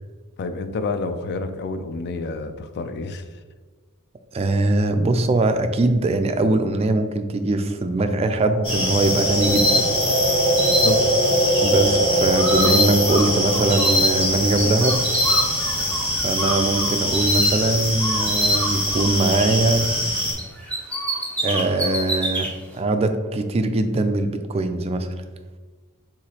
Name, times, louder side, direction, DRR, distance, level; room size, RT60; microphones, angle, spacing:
voice 1, 0.4-3.3 10.7-11.1, left 3 dB, 50° left, 9 dB, 0.4 m, -28 dB
voice 2, 4.3-9.9 11.6-15.1 16.2-19.9 21.4-22.5 22.7-25.2, right 2 dB, 30° right, 7 dB, 0.3 m, -21 dB
sound 1, 8.1-16.1, right 1 dB, 80° left, 1.1 m, -24 dB
sound 2, 8.6-20.3, left 1 dB, 25° left, 1.4 m, -23 dB
Bird, 12.3-13.9 14.2-17.7 18.0-20.1 20.4-22.5, right 1 dB, 5° left, 0.8 m, -29 dB
4.9 x 3.7 x 2.8 m, 1.4 s
head